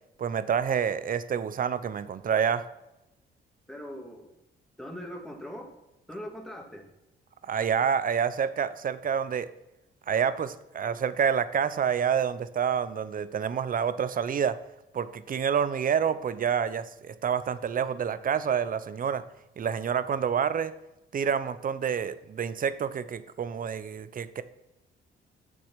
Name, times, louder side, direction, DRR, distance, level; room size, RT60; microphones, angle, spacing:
voice 1, 0.2-2.7 7.4-9.5 10.1-14.6 14.9-19.2 19.6-20.7 21.1-24.4, right 7 dB, 45° right, 14 dB, 0.7 m, -28 dB
voice 2, 3.7-4.3 4.8-5.7 6.1-6.9, equal, ahead, 1 dB, 2.4 m, -40 dB
8.7 x 6.6 x 5.8 m, 0.91 s
cardioid pair, 90°, 20 cm